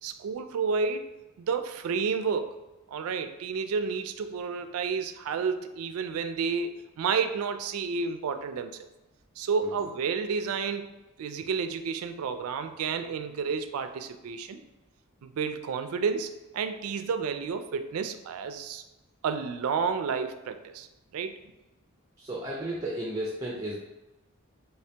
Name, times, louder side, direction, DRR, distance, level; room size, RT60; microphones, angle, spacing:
voice 1, 0.0-1.1 1.4-2.6 2.9-8.9 9.4-10.9 11.2-14.6 15.2-18.8 19.2-20.9 21.1-21.4, right 5 dB, 85° right, 9 dB, 0.3 m, -31 dB
voice 2, 22.2-23.8, right 1 dB, 20° right, -3 dB, 0.4 m, -33 dB
3.2 x 2.8 x 3.3 m, 1.0 s
head